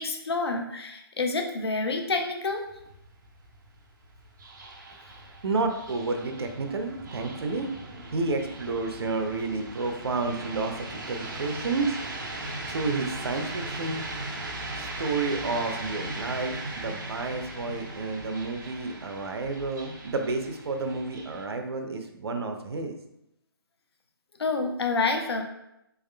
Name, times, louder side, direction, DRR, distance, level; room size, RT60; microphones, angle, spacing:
voice 1, 0.0-2.6 24.4-25.4, left 3 dB, 80° left, 4 dB, 0.7 m, -28 dB
sound 1, 2.5-21.4, right 2 dB, 50° right, 0.8 m, -39 dB
voice 2, 5.4-7.7 8.1-12.0 12.7-14.0 14.8-22.9, right 3 dB, 80° right, 5 dB, 0.6 m, -30 dB
3.9 x 3.5 x 2.2 m, 0.84 s
hypercardioid pair, 160°, 13 cm